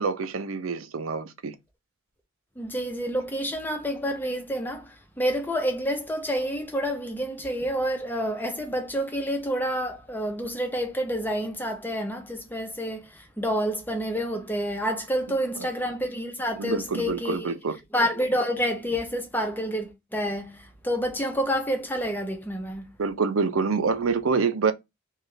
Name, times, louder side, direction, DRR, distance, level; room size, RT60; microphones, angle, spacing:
voice 1, 0.0-1.6 16.6-17.8 23.0-24.7, right 5 dB, 85° right, 0.6 m, -26 dB
voice 2, 2.6-17.5 17.9-22.9, equal, 10° left, 0.8 m, -28 dB
3.2 x 2.4 x 3.9 m
head